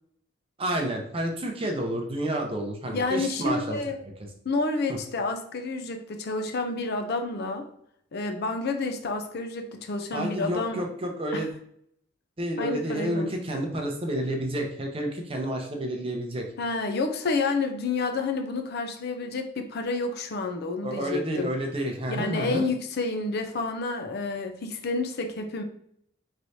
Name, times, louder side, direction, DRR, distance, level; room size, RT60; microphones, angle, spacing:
voice 1, 0.6-3.8 4.9-5.0 10.1-11.5 12.4-16.5 20.8-22.6, right 1 dB, 30° right, 2 dB, 0.7 m, -30 dB
voice 2, 2.9-4.0 4.4-7.7 8.1-10.8 11.3-11.4 12.6-13.3 16.6-21.5 22.1-25.6, left 3 dB, 55° left, 5 dB, 0.5 m, -29 dB
4.5 x 3.2 x 2.7 m, 0.69 s
head